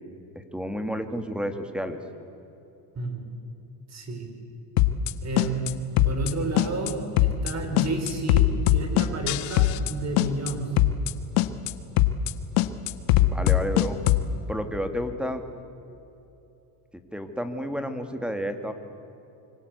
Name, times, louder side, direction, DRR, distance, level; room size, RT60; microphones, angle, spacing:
voice 1, 0.4-2.0 13.2-14.0 14.5-15.4 17.1-18.7, equal, ahead, 7 dB, 2.3 m, -31 dB
voice 2, 3.9-4.3 5.2-5.7 6.0-10.7, right 2 dB, 35° right, 5 dB, 5.3 m, -31 dB
sound 1, 4.8-5.1 5.4-5.7 6.0-6.3 6.6-6.9 7.2-7.5 7.8-9.9 10.2-10.5 10.8-11.1 11.4-11.7 12.0-12.3 12.6-14.3, left 15 dB, 80° left, 1.5 m, -21 dB
26.0 x 25.0 x 8.2 m, 2.9 s
cardioid pair, 125°, 46 cm